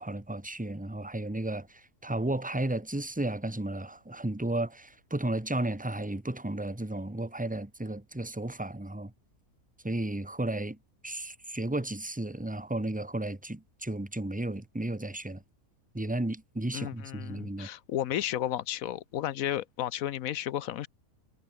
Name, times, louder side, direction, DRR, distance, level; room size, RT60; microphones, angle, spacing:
voice 1, 0.0-9.1 9.8-10.8 11.0-15.4 15.9-17.7, right 1 dB, 5° right, 1.3 m, -33 dB
voice 2, 16.7-20.9, left 12 dB, 75° left, 1.1 m, -33 dB
omnidirectional pair, 1.5 m